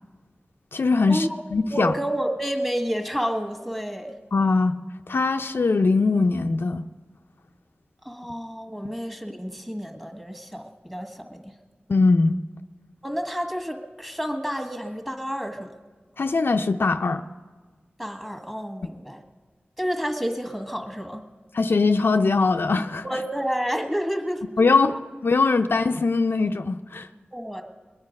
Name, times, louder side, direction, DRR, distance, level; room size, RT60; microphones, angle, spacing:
voice 1, 0.7-1.9 4.3-4.8 5.1-6.9 11.9-12.4 16.2-17.2 21.5-23.0 24.6-25.0 25.2-27.1, left 3 dB, 70° left, 7 dB, 0.5 m, -21 dB
voice 2, 1.7-4.1 8.0-11.6 13.0-15.7 18.0-19.2 19.8-21.2 23.0-24.4 24.7-25.0 27.3-27.6, equal, 5° right, 5 dB, 1.6 m, -30 dB
21.5 x 9.6 x 5.2 m, 1.4 s
wide cardioid pair, 65°, 4 cm